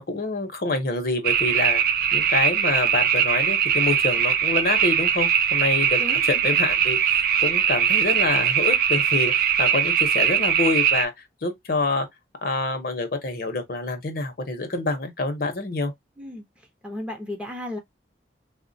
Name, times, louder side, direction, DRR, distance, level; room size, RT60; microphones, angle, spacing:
voice 1, 0.0-1.8 2.1-11.1 11.4-12.1 12.4-15.9, left 3 dB, 55° left, 0.7 m, -26 dB
sound 1, 1.2-11.1, right 8 dB, 55° right, 0.4 m, -21 dB
voice 2, 6.0-6.6 16.2-16.4 16.8-17.8, left 1 dB, 5° right, 0.6 m, -34 dB
3.4 x 2.1 x 2.6 m
head